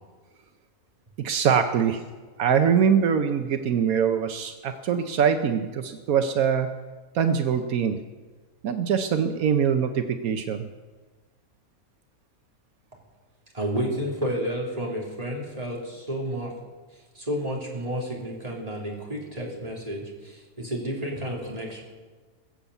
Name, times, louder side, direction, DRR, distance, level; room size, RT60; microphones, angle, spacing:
voice 1, 1.2-2.0 2.4-6.7 7.1-8.0 8.6-10.7, right 7 dB, 80° right, 7 dB, 1.3 m, -23 dB
voice 2, 13.5-16.5 17.1-21.8, equal, 25° right, -2 dB, 3.4 m, -31 dB
21.0 x 7.1 x 8.2 m, 1.4 s
omnidirectional pair, 1.5 m